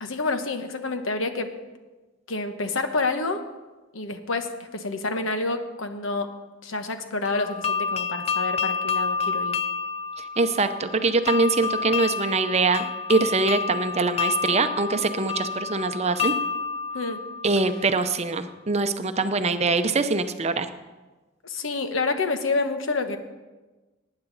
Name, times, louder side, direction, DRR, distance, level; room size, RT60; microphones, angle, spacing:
voice 1, 0.0-1.5 2.3-3.4 3.9-6.3 6.6-9.5 16.9-17.2 21.4-23.2, left 3 dB, 90° left, 7 dB, 1.1 m, -28 dB
sound 1, 7.3-18.1, left 5 dB, 30° left, 0.4 m, -29 dB
voice 2, 10.4-16.4 17.4-20.7, right 3 dB, 35° right, 9 dB, 0.7 m, -23 dB
19.0 x 9.6 x 4.1 m, 1.2 s
head